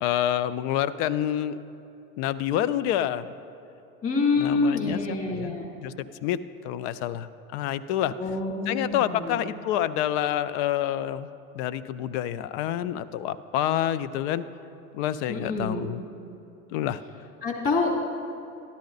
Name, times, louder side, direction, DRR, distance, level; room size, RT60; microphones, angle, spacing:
voice 1, 0.0-1.6 2.2-3.3 4.4-8.2 8.7-11.3 11.5-14.5 14.9-16.0 16.7-17.0, left 11 dB, 50° left, 14 dB, 0.6 m, -28 dB
voice 2, 4.0-5.7 8.2-9.5 15.3-15.9 17.4-18.1, left 3 dB, 30° left, -1 dB, 2.6 m, -27 dB
12.5 x 12.0 x 4.0 m, 2.9 s
hypercardioid pair, 90°, 43 cm